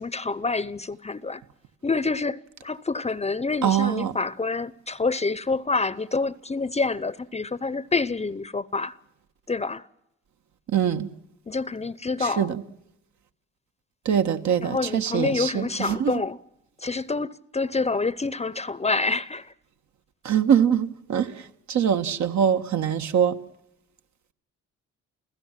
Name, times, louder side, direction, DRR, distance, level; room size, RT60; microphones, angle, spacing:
voice 1, 0.0-1.4 1.8-9.0 9.5-9.9 11.5-12.5 14.6-16.4 16.8-19.5, left 3 dB, 20° left, 0.8 m, -27 dB
voice 2, 3.6-4.1 10.7-11.1 12.4-12.6 14.0-16.1 20.2-21.3 21.7-23.3, right 8 dB, 70° right, 1.6 m, -23 dB
29.5 x 16.0 x 7.5 m
cardioid pair, 90°, 30 cm